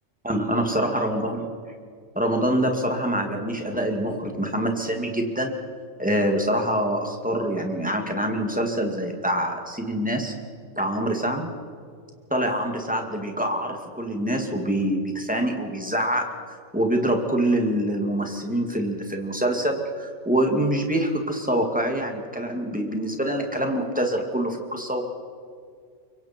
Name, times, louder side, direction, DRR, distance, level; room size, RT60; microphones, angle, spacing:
voice 1, 0.2-1.4 2.2-5.6 6.0-10.3 10.8-11.5 12.3-25.0, right 1 dB, 5° right, 2 dB, 2.3 m, -25 dB
25.0 x 23.5 x 4.5 m, 2.2 s
omnidirectional pair, 1.3 m